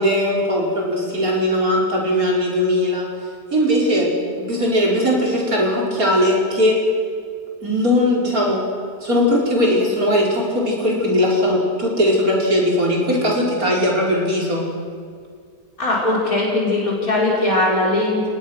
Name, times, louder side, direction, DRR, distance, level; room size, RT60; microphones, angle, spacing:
voice 1, 0.0-3.1 3.5-4.1 4.3-6.8 7.6-8.6 9.0-14.6, left 1 dB, 60° right, -2 dB, 5.4 m, -19 dB
voice 2, 15.8-18.3, left 2 dB, 60° left, -5 dB, 5.8 m, -19 dB
29.5 x 19.5 x 6.5 m, 2.1 s
omnidirectional pair, 1.7 m